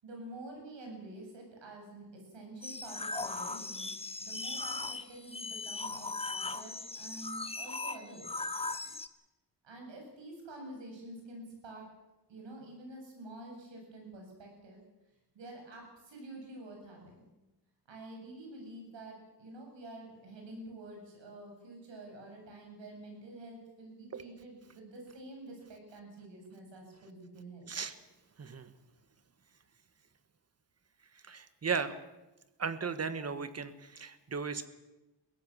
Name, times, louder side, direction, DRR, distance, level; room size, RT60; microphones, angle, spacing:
voice 1, 0.0-3.9 4.2-8.5 9.6-11.9 12.3-14.8 15.3-17.2 17.9-27.7, right 2 dB, 80° right, 1 dB, 8.0 m, -48 dB
sound 1, 2.6-9.1, left 3 dB, 15° left, 0.8 m, -38 dB
voice 2, 28.4-28.7 31.2-31.9 32.6-34.7, right 5 dB, 35° right, 12 dB, 1.4 m, -36 dB
23.0 x 16.5 x 7.4 m, 1.0 s
wide cardioid pair, 140°, 43 cm